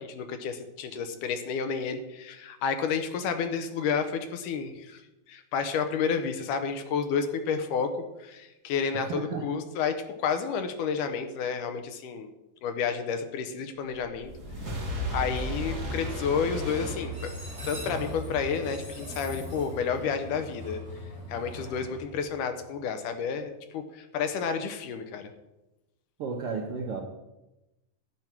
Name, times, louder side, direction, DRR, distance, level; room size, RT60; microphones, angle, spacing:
voice 1, 0.0-5.0 5.3-12.3 12.6-14.3 15.1-17.3 17.6-20.8 21.3-25.3, left 6 dB, 75° left, 7 dB, 2.2 m, -30 dB
voice 2, 8.9-9.5 26.2-27.0, right 4 dB, 70° right, 1 dB, 1.4 m, -33 dB
sound 1, 13.9-17.7, equal, 35° right, 1.4 m, -35 dB
Train, 14.8-22.8, equal, ahead, 4.0 m, -39 dB
11.5 x 9.3 x 4.5 m, 0.98 s
omnidirectional pair, 4.0 m